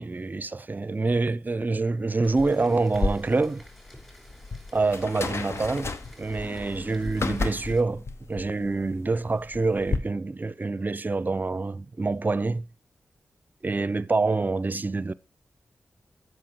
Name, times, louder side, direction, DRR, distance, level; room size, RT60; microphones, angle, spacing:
voice 1, 0.0-3.6 4.7-5.9 6.2-12.6 13.6-15.1, right 3 dB, 35° right, 0.5 m, -26 dB
Rain, 2.2-7.8, equal, 5° left, 4.8 m, -45 dB
sound 1, 2.9-10.0, left 3 dB, 60° left, 0.9 m, -33 dB
7.5 x 6.1 x 4.4 m
cardioid pair, 45°, 5 cm